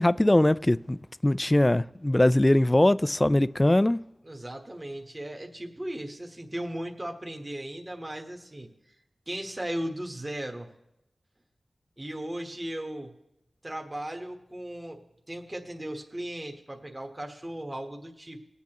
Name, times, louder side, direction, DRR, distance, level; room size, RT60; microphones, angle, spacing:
voice 1, 0.0-4.0, left 1 dB, 25° left, 0.3 m, -22 dB
voice 2, 4.2-8.7 9.3-10.7 12.0-13.1 13.6-15.0 15.3-18.4, right 1 dB, 30° right, 1.3 m, -36 dB
20.0 x 8.3 x 3.0 m
cardioid pair, 45°, 0 cm